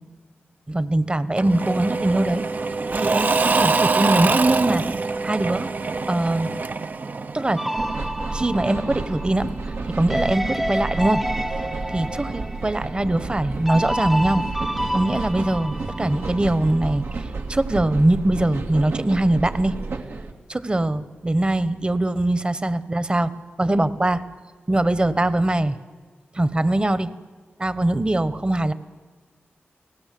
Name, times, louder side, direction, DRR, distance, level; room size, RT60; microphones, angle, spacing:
voice 1, 0.7-2.4 3.0-4.8 5.2-5.7 6.1-6.5 7.3-7.6 8.3-9.5 9.9-11.3 11.9-14.4 14.9-19.7 20.5-23.3 23.6-24.2 24.7-25.8 26.3-27.1 27.6-28.7, right 1 dB, 25° right, 14 dB, 1.1 m, -22 dB
Engine / Mechanisms / Drill, 1.4-8.0, right 4 dB, 45° right, 0.7 m, -24 dB
sound 1, 7.6-17.0, equal, 5° right, 0.6 m, -30 dB
sound 2, 7.8-20.3, right 3 dB, 85° right, 2.1 m, -31 dB
29.5 x 19.0 x 7.8 m, 1.5 s
wide cardioid pair, 95°, 4 cm